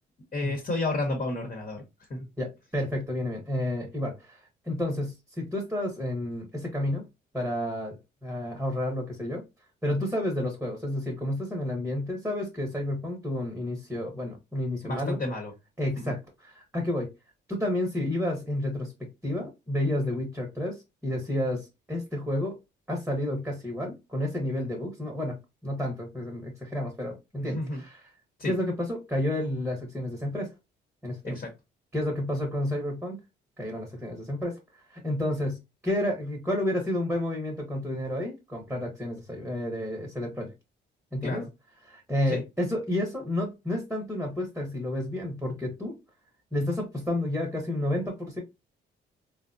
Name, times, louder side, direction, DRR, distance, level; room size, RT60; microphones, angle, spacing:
voice 1, 0.3-1.8 2.1-2.3 14.8-15.5 15.9-16.1 27.4-27.8 28.4-28.5 31.2-31.5 41.2-41.5 42.3-42.4, left 2 dB, 40° left, 2 dB, 1.2 m, -31 dB
voice 2, 2.4-7.1 7.3-8.0 8.2-9.4 9.8-15.2 15.8-17.1 17.5-18.9 19.2-22.6 22.9-28.1 28.4-30.5 31.0-31.4 31.9-33.2 33.6-40.5 41.1-41.5 41.8-46.0 46.5-48.4, left 1 dB, 5° right, 1 dB, 1.1 m, -31 dB
3.6 x 2.2 x 2.6 m, 0.23 s
cardioid pair, 90°, 20 cm